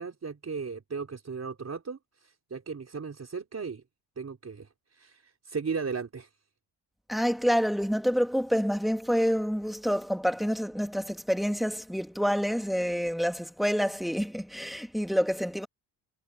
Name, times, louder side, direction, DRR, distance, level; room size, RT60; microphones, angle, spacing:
voice 1, 0.0-3.8 4.2-6.3, right 5 dB, 35° right, 4.7 m, -36 dB
voice 2, 7.1-15.7, equal, ahead, 2.1 m, -27 dB
cardioid pair, 105°, 47 cm